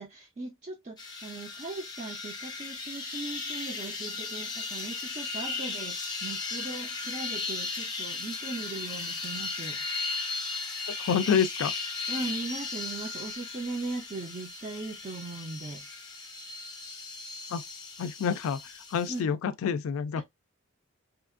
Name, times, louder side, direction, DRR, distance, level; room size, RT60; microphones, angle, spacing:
voice 1, 0.0-9.8 12.1-15.8 19.1-19.3 20.1-20.2, right 3 dB, 35° right, 0.4 m, -39 dB
sound 1, 1.0-19.2, left 4 dB, 20° left, 0.5 m, -36 dB
voice 2, 11.0-11.7 17.5-17.6 18.0-18.6 18.9-20.2, left 7 dB, 80° left, 0.3 m, -27 dB
2.8 x 2.4 x 2.3 m
head